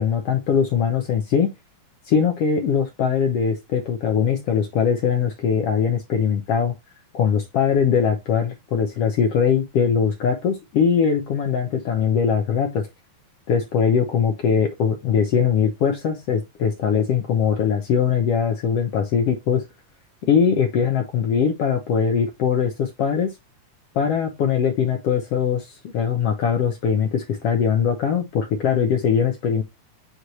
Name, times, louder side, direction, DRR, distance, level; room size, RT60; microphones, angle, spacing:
voice 1, 0.0-1.5 2.0-6.7 7.1-12.9 13.5-19.6 20.2-23.3 23.9-29.6, left 7 dB, 70° left, 1.5 m, -21 dB
8.0 x 3.2 x 4.1 m
omnidirectional pair, 3.6 m